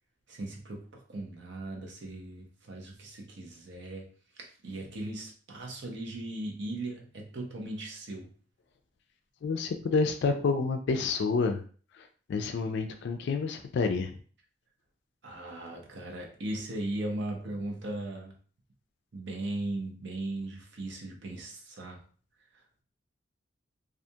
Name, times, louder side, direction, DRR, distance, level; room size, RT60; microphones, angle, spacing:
voice 1, 0.3-4.1 4.4-8.3 15.2-18.3 19.1-22.0, right 2 dB, 65° right, 1 dB, 0.7 m, -38 dB
voice 2, 9.4-11.6 12.3-14.2, left 4 dB, 65° left, 6 dB, 0.3 m, -28 dB
2.4 x 2.2 x 2.7 m, 0.41 s
head